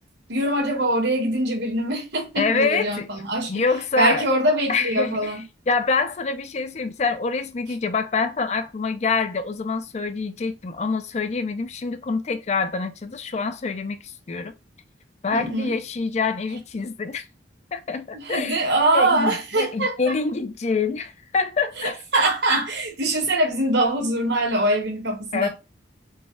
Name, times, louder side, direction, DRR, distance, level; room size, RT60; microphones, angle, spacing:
voice 1, 0.3-3.6 4.0-5.4 15.3-15.7 18.1-20.1 22.1-25.5, right 1 dB, 80° right, 1.5 m, -23 dB
voice 2, 2.4-3.1 3.5-4.3 4.7-5.4 5.7-14.5 15.2-17.3 17.7-18.6 18.9-21.9 25.3-25.5, left 4 dB, 40° left, 0.4 m, -26 dB
4.0 x 2.3 x 3.7 m
head